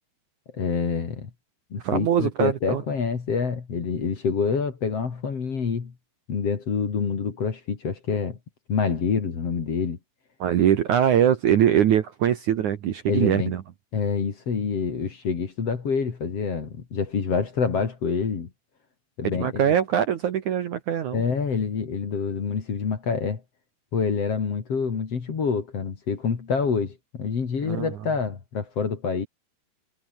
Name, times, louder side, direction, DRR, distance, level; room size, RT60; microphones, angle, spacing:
voice 1, 0.5-1.3 1.7-5.9 6.3-8.4 8.7-10.0 13.1-13.5 13.9-18.5 19.2-19.8 21.1-23.4 23.9-29.3, left 5 dB, 40° left, 3.3 m, -27 dB
voice 2, 1.8-2.8 10.4-13.6 19.2-21.2 27.7-27.9, right 10 dB, 60° right, 2.3 m, -22 dB
omnidirectional pair, 4.7 m